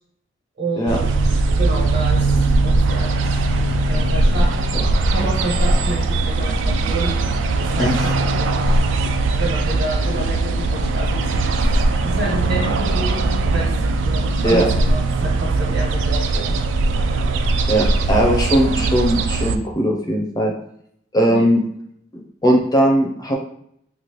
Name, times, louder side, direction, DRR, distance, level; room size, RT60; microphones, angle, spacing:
voice 1, 0.6-2.3 2.6-3.4 3.9-4.6 5.1-7.1 7.7-8.7 9.4-11.5 12.0-13.7 13.9-14.6 14.9-16.6 21.3-21.4, right 1 dB, 60° right, -4 dB, 1.2 m, -29 dB
sound 1, 0.9-19.6, right 2 dB, 80° right, 0.3 m, -19 dB
voice 2, 7.8-8.1 14.4-14.7 17.7-20.5 21.1-21.6 22.4-23.4, equal, 20° left, 0 dB, 0.5 m, -18 dB
3.0 x 2.6 x 2.9 m, 0.70 s
head